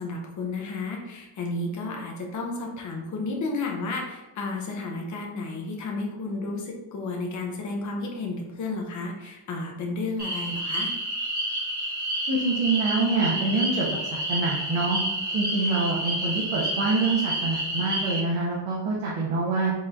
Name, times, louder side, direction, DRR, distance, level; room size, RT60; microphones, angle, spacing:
voice 1, 0.0-10.9, left 3 dB, 35° left, 0 dB, 0.8 m, -32 dB
sound 1, 10.2-18.2, right 1 dB, 20° right, 1.4 m, -29 dB
voice 2, 12.3-15.0 15.3-19.7, right 3 dB, 70° right, -5 dB, 1.1 m, -26 dB
4.8 x 3.7 x 2.8 m, 1.1 s
cardioid pair, 170°, 49 cm